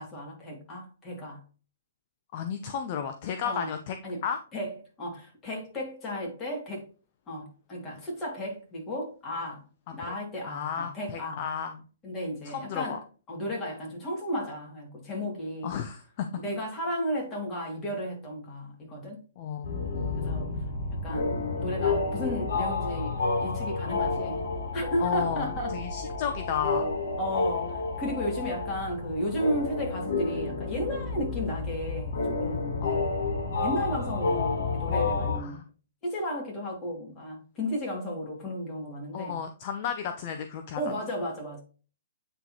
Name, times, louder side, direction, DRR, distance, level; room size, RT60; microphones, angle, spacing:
voice 1, 0.0-1.4 3.4-3.7 4.0-4.2 4.5-6.9 7.3-9.6 9.9-11.4 12.0-13.0 13.3-15.7 16.4-19.2 20.1-20.5 20.9-23.1 23.4-24.4 24.7-25.8 27.2-32.8 33.3-35.6 36.0-39.4 40.8-41.6, equal, 20° left, 2.6 m, -34 dB
voice 2, 2.3-4.0 4.2-4.4 10.0-10.1 10.5-11.8 12.4-13.0 15.6-16.3 19.4-19.7 19.9-20.5 25.0-26.9 32.8-33.0 35.4-35.6 39.1-40.8, left 8 dB, 45° left, 0.7 m, -33 dB
sound 1, 19.6-35.4, left 3 dB, 70° left, 3.1 m, -30 dB
9.0 x 3.9 x 3.0 m
hypercardioid pair, 140°, 0 cm